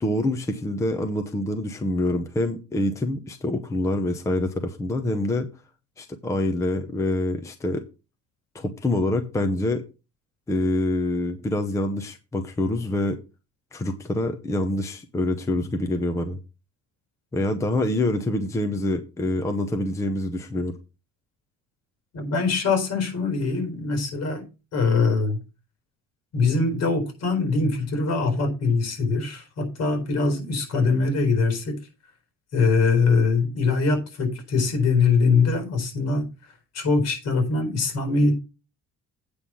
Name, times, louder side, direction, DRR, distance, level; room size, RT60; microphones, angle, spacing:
voice 1, 0.0-5.5 6.0-7.9 8.5-9.8 10.5-13.2 13.7-16.4 17.3-20.8, left 1 dB, 10° left, 0.7 m, -26 dB
voice 2, 22.1-24.4 24.7-25.4 26.3-31.8 32.5-36.3 36.7-38.3, left 4 dB, 60° left, 4.1 m, -22 dB
8.6 x 5.6 x 6.1 m
cardioid pair, 180°, 29 cm